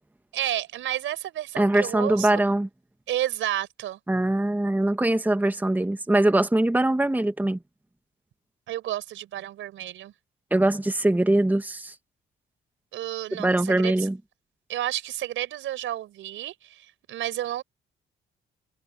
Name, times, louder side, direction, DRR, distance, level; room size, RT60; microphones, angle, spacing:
voice 1, 0.3-2.4 3.1-4.0 8.7-10.1 12.9-13.9 14.7-17.6, right 13 dB, 80° right, 4.8 m, -31 dB
voice 2, 1.6-2.7 4.1-7.6 10.5-11.9 13.4-14.2, right 1 dB, 10° right, 1.6 m, -22 dB
cardioid pair, 90°, 20 cm